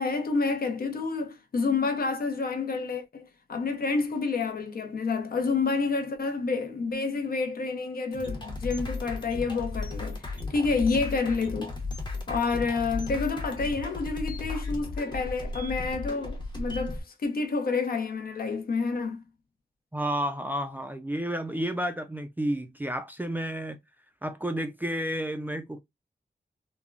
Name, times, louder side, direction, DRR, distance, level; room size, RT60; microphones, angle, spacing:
voice 1, 0.0-11.8 12.3-19.2, left 4 dB, 65° left, 0.6 m, -29 dB
sound 1, 8.1-17.0, left 3 dB, 25° left, 0.8 m, -35 dB
voice 2, 19.9-23.8 24.2-25.8, equal, 10° right, 0.3 m, -31 dB
3.5 x 2.0 x 2.2 m
wide cardioid pair, 115°, 17 cm